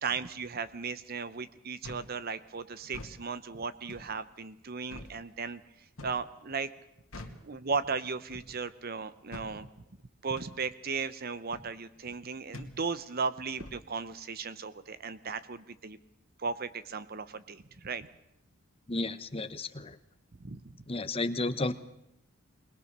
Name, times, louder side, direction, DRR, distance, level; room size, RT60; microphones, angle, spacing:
voice 1, 0.0-5.6 6.0-6.7 7.4-9.7 10.2-16.0 16.4-18.1 20.4-20.7, right 5 dB, 45° right, 14 dB, 0.7 m, -36 dB
sound 1, 1.8-2.1 2.8-3.2 3.9-4.1 4.9-5.1 6.0-6.3 7.1-7.4 8.3-8.5 9.3-9.5 10.3-10.5 11.5-11.7 12.5-12.7 13.6-13.8, left 1 dB, 75° left, 2.3 m, -45 dB
voice 2, 18.9-20.0 20.9-21.7, left 2 dB, 25° left, 11 dB, 0.9 m, -32 dB
21.0 x 21.0 x 6.7 m, 0.81 s
head